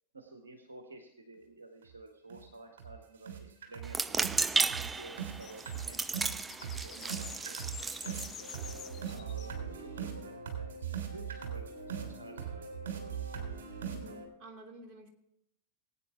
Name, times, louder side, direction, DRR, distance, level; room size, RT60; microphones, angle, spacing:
voice 1, 0.1-4.3 4.8-6.1 6.6-7.6 8.0-8.6 9.1-13.2, right 2 dB, 75° right, 5 dB, 1.6 m, -51 dB
sound 1, 1.8-1.9 2.3-2.5 2.8-2.9 3.3-14.3, right 7 dB, 60° right, 3.6 m, -40 dB
sound 2, 3.8-9.2, right 4 dB, 15° right, 0.4 m, -34 dB
sound 3, 4.8-9.6, left 10 dB, 30° left, 0.8 m, -50 dB
voice 2, 13.8-15.1, right 2 dB, 35° right, 1 dB, 2.8 m, -51 dB
20.0 x 9.2 x 3.6 m, 0.78 s
figure-of-eight pair, 90°, 0 cm